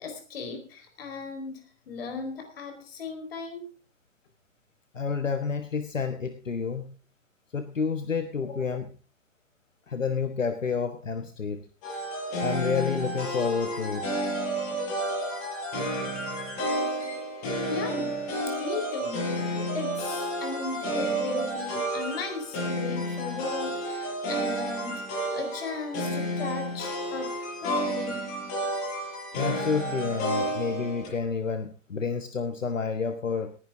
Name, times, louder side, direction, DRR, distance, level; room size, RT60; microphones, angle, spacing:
voice 1, 0.0-3.7 8.4-8.5 17.6-18.2 18.6-19.2 19.7-28.3, left 4 dB, 45° left, 5 dB, 4.4 m, -36 dB
voice 2, 4.9-6.9 7.5-8.9 9.9-11.7 12.4-14.1 29.3-33.6, left 5 dB, 75° left, 9 dB, 1.3 m, -29 dB
sound 1, 11.8-31.1, right 1 dB, 30° left, 7.5 m, -31 dB
18.5 x 11.5 x 3.7 m, 0.38 s
figure-of-eight pair, 125°, 39 cm